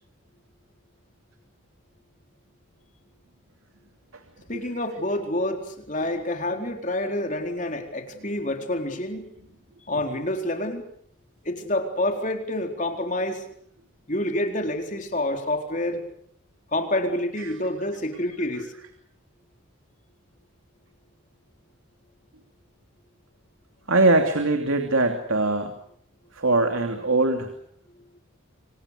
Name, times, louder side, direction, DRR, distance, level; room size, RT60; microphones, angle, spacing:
voice 1, 4.5-9.3 9.9-10.8 11.4-13.4 14.1-16.0 16.7-18.7, left 1 dB, 35° left, 4 dB, 4.1 m, -28 dB
voice 2, 23.9-25.7 26.3-27.5, right 2 dB, 85° right, 5 dB, 2.8 m, -22 dB
28.5 x 26.0 x 6.7 m, 0.65 s
head